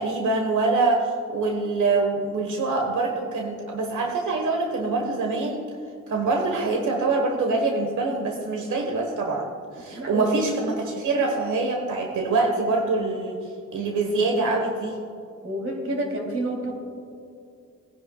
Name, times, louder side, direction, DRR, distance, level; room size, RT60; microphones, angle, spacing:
voice 1, 0.0-5.6 6.1-9.4 9.8-13.4 13.7-15.0, right 3 dB, 90° right, 2 dB, 1.3 m, -24 dB
voice 2, 9.9-10.5 15.4-16.7, right 1 dB, 50° right, 0 dB, 3.0 m, -29 dB
19.5 x 10.5 x 2.3 m, 2.5 s
wide cardioid pair, 120°, 30 cm